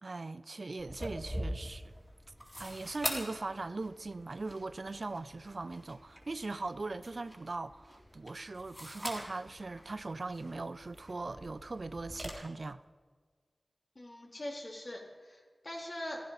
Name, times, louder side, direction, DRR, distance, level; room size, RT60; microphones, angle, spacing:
voice 1, 0.0-1.9 2.6-12.8, right 3 dB, 55° right, 0.5 m, -40 dB
sound 1, 0.8-12.3, equal, 10° left, 3.9 m, -44 dB
voice 2, 14.0-16.2, left 1 dB, 45° left, 3.6 m, -42 dB
16.0 x 15.5 x 5.8 m
wide cardioid pair, 85°, 0 cm